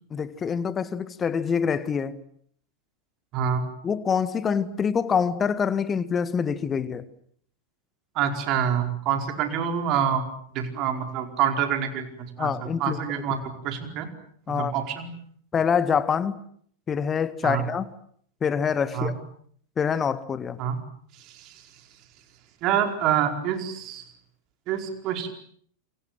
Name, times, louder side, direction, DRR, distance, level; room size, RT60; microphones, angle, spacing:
voice 1, 0.1-2.2 3.8-7.0 12.4-13.0 14.5-14.7 15.5-16.4 16.9-17.8 18.4-19.1 19.8-20.6, left 6 dB, 20° left, 15 dB, 1.8 m, -25 dB
voice 2, 3.3-3.6 8.1-10.2 10.5-12.5 12.8-14.1 14.5-15.1 17.4-17.6 18.9-19.1 20.6-20.8 21.2-21.6 22.6-24.0 24.7-25.3, right 8 dB, 40° right, 6 dB, 4.8 m, -26 dB
29.0 x 26.0 x 7.7 m, 0.62 s
figure-of-eight pair, 90°, 0 cm